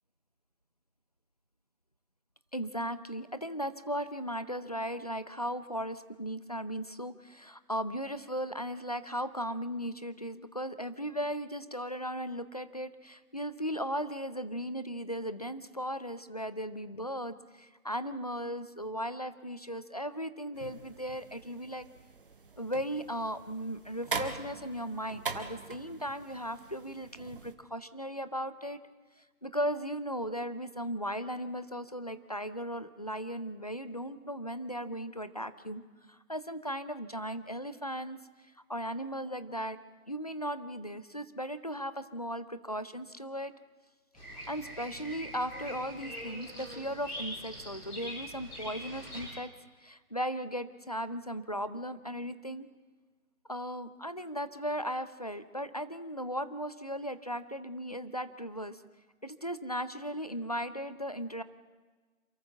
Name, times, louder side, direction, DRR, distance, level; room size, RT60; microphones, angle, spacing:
voice 1, 2.5-21.9 22.6-28.8 29.4-35.8 36.1-38.2 38.7-39.8 40.1-43.5 44.5-49.5 49.8-52.7 53.5-58.8 59.2-61.4, equal, 25° left, 14 dB, 0.6 m, -37 dB
sound 1, 20.5-27.5, right 4 dB, 40° right, 1.5 m, -42 dB
Bird vocalization bird call bird song, 44.1-49.2, equal, 10° left, 4.2 m, -43 dB
28.0 x 13.5 x 7.2 m, 1.4 s
figure-of-eight pair, 165°, 43 cm